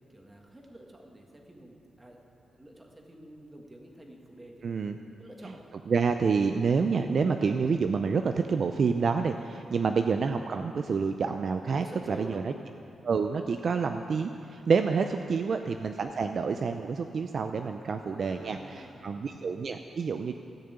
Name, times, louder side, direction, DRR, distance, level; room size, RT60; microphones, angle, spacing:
voice 1, 0.1-2.2 2.5-4.9 5.2-5.6 11.8-12.4 17.8-19.1, right 1 dB, 20° right, 0 dB, 1.7 m, -48 dB
voice 2, 4.6-5.0 5.9-12.3 13.0-20.3, right 5 dB, 55° right, 6 dB, 0.4 m, -28 dB
14.0 x 6.6 x 8.1 m, 2.6 s
cardioid pair, 115°, 0 cm